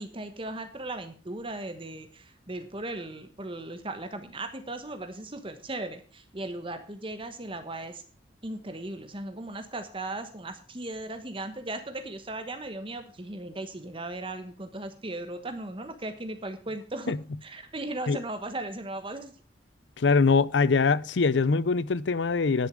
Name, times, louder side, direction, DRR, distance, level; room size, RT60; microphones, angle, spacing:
voice 1, 0.0-8.0 8.4-19.3, right 2 dB, 30° right, 1.2 m, -37 dB
voice 2, 20.0-22.7, left 4 dB, 85° left, 0.6 m, -23 dB
10.5 x 7.2 x 6.3 m
head